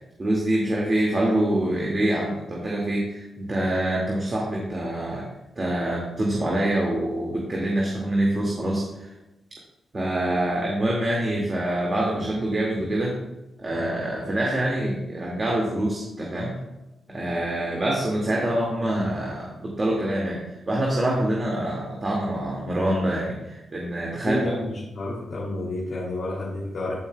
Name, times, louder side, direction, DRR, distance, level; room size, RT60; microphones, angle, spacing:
voice 1, 0.2-5.3 5.6-9.1 9.9-13.1 13.6-16.5 17.1-20.4 20.7-24.4, right 1 dB, 40° right, -3 dB, 2.2 m, -25 dB
voice 2, 24.2-26.9, left 2 dB, 65° left, -6 dB, 2.8 m, -30 dB
14.5 x 5.7 x 2.3 m, 0.99 s
supercardioid pair, 50°, 0 cm